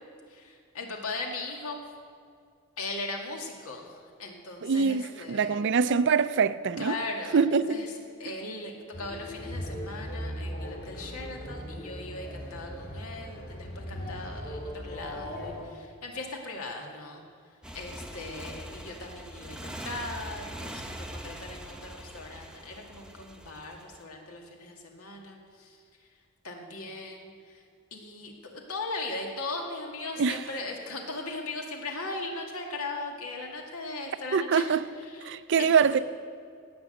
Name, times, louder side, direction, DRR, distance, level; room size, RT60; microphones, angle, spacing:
voice 1, 0.3-1.8 2.8-5.7 6.8-7.9 8.2-17.2 17.7-25.8 26.4-27.6 27.9-34.7 35.1-35.9, left 2 dB, 85° left, 2.1 m, -38 dB
voice 2, 4.6-7.0 7.3-7.9 30.2-30.4 34.3-34.9 35.2-36.0, right 5 dB, 55° right, 0.4 m, -24 dB
sound 1, 8.9-15.6, equal, 45° left, 3.9 m, -38 dB
Motorcycle, 17.6-24.0, right 1 dB, 5° right, 0.8 m, -42 dB
17.5 x 6.1 x 7.8 m
head